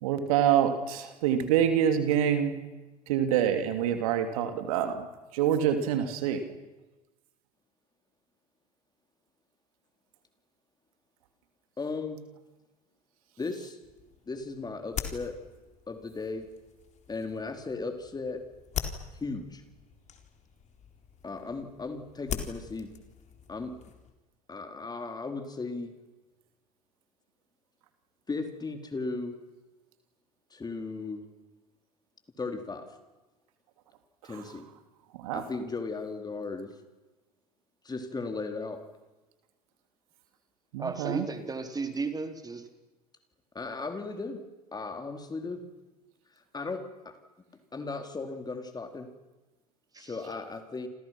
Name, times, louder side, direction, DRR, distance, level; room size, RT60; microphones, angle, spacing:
voice 1, 0.0-2.6 3.1-5.1 5.3-6.4 35.2-35.4 40.7-41.3, right 9 dB, 65° right, 8 dB, 2.8 m, -26 dB
voice 2, 11.8-12.3 13.4-13.8 14.3-15.4 15.9-16.5 17.1-18.4 19.2-19.6 21.2-22.9 23.5-23.8 24.5-25.9 28.3-29.4 30.5-31.3 32.4-32.9 34.2-34.7 35.3-36.7 37.8-38.8 43.5-44.4 44.7-45.6 46.5-47.1 47.7-49.1 50.0-50.9, left 3 dB, 20° left, 6 dB, 4.3 m, -36 dB
sound 1, 13.8-24.1, left 7 dB, 35° left, 4.1 m, -42 dB
voice 3, 40.8-42.6 49.9-50.1, right 4 dB, 20° right, 7 dB, 3.9 m, -34 dB
29.5 x 28.0 x 6.1 m, 1.1 s
figure-of-eight pair, 65°, 19 cm